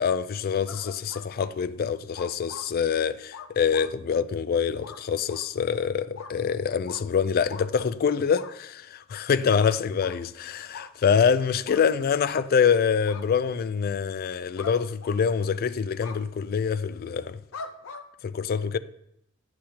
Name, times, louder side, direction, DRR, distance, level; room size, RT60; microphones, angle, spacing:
voice 1, 0.0-17.4 18.2-18.8, left 6 dB, 45° left, 0.3 m, -25 dB
sound 1, 0.7-1.5 2.1-2.7 3.3-3.9 4.8-5.0 5.3-5.5 6.2-6.3 6.9-7.0 7.5-7.7 8.3-8.5 9.6-10.2 10.7-10.9 11.7-11.8 12.2-12.4 13.1-13.3 14.6-14.8 15.0-15.5 16.0-16.2 17.5-18.0, left 5 dB, 85° left, 0.6 m, -41 dB
10.0 x 7.7 x 2.8 m
head